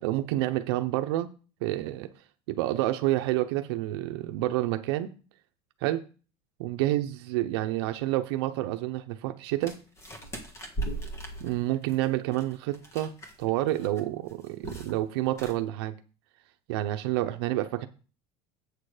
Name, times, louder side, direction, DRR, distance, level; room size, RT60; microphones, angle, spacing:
voice 1, 0.0-1.3 1.6-2.1 2.5-5.1 5.8-6.0 6.6-9.8 11.4-13.1 13.4-15.9 16.7-17.9, right 15 dB, 75° right, 0.7 m, -28 dB
sound 1, 9.6-13.4 13.7-14.0 14.3-15.0 15.3-15.5, right 2 dB, 20° left, 1.6 m, -38 dB
8.3 x 6.7 x 4.9 m
cardioid pair, 165°, 13 cm